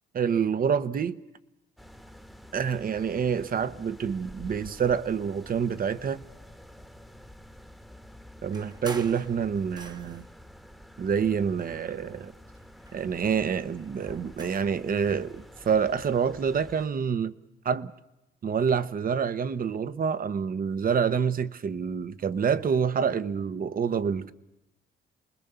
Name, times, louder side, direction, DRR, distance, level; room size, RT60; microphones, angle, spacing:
voice 1, 0.1-1.2 2.5-6.2 8.4-10.3 11.0-12.3 12.9-17.3 17.6-17.9 18.4-24.3, right 7 dB, 45° right, 1.0 m, -27 dB
sound 1, 1.8-16.9, equal, ahead, 1.3 m, -49 dB
sound 2, 8.5-10.4 11.1-12.2 12.6-14.8, right 3 dB, 20° right, 1.1 m, -46 dB
29.0 x 20.5 x 6.9 m
cardioid pair, 90°, 20 cm